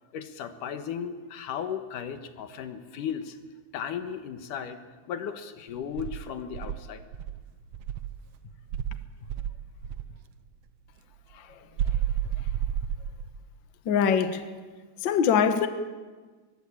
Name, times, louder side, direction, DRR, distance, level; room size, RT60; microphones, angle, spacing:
voice 1, 0.1-3.4 3.7-4.8 5.1-7.0, left 8 dB, 75° left, 2.8 m, -35 dB
Insect, 6.0-8.2 8.7-10.1 11.8-13.4, right 10 dB, 80° right, 1.3 m, -31 dB
voice 2, 13.8-14.4 15.0-15.7, left 7 dB, 50° left, 1.4 m, -22 dB
23.5 x 19.5 x 8.7 m
omnidirectional pair, 3.8 m